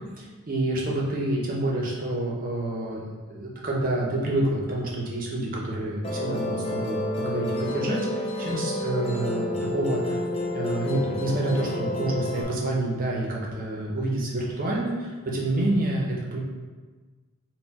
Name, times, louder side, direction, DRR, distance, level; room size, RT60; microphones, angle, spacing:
voice 1, 0.2-10.2 10.5-16.4, right 1 dB, 40° right, -3 dB, 0.6 m, -28 dB
Musical instrument, 6.0-12.4, left 1 dB, 25° left, 0.4 m, -30 dB
4.0 x 2.2 x 4.0 m, 1.4 s
head